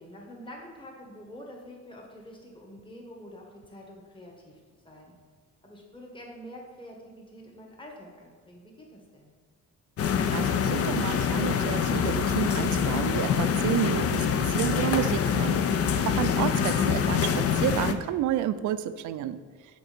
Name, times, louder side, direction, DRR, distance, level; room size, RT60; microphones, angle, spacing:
voice 1, 0.0-5.2 5.6-9.3, equal, 15° left, -1 dB, 1.4 m, -47 dB
sound 1, 10.0-17.9, left 7 dB, 50° left, 0.5 m, -25 dB
voice 2, 10.3-14.3 14.5-15.6 16.1-19.4, right 12 dB, 75° right, 12 dB, 0.5 m, -30 dB
6.1 x 3.8 x 5.1 m, 1.5 s
cardioid pair, 90°, 30 cm